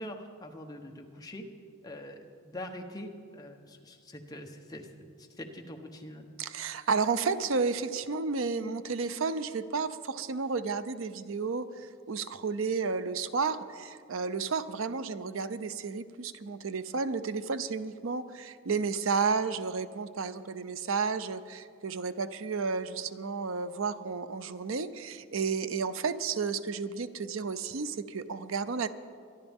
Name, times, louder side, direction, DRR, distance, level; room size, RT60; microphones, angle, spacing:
voice 1, 0.0-1.5 1.8-4.9 5.2-6.3, left 1 dB, 20° left, 3 dB, 0.9 m, -43 dB
voice 2, 6.4-28.9, right 5 dB, 70° right, 12 dB, 0.6 m, -32 dB
24.0 x 11.5 x 3.6 m, 2.3 s
head